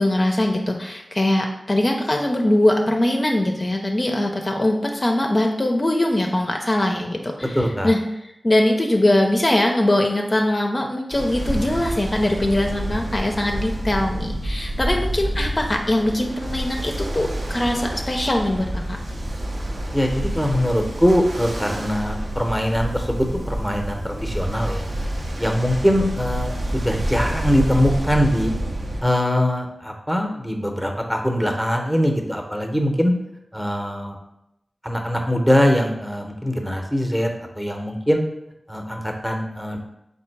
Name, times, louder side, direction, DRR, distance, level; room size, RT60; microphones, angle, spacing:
voice 1, 0.0-19.0, left 1 dB, 40° left, 2 dB, 0.5 m, -21 dB
voice 2, 7.5-7.9 19.9-24.8 25.4-28.5 29.0-33.1 33.5-34.2 34.8-37.3 37.6-38.2 38.7-39.8, equal, 5° right, 2 dB, 0.7 m, -22 dB
Ocean, 11.1-29.0, right 1 dB, 70° right, 0.6 m, -28 dB
3.6 x 2.7 x 4.5 m, 0.85 s
cardioid pair, 50°, 0 cm